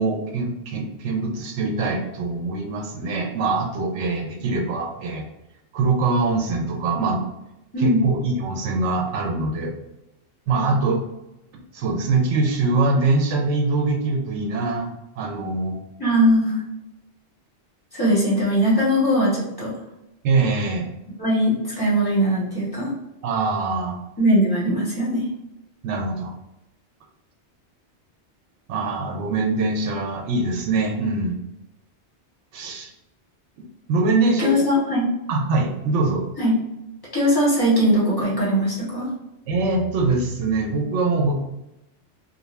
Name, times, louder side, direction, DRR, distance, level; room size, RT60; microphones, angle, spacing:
voice 1, 0.0-5.2 5.7-7.2 7.8-9.7 10.5-11.0 11.7-14.9 15.2-15.8 20.2-20.9 23.2-24.0 25.8-26.3 28.7-31.3 32.5-32.9 33.9-34.5 35.3-36.2 39.5-41.3, right 3 dB, 85° right, 1 dB, 0.9 m, -23 dB
voice 2, 16.0-16.6 17.9-19.7 21.2-22.9 24.2-25.3 34.4-35.1 36.4-36.6 37.1-39.1, equal, 20° left, -8 dB, 0.9 m, -20 dB
2.5 x 2.2 x 3.1 m, 0.93 s
omnidirectional pair, 1.2 m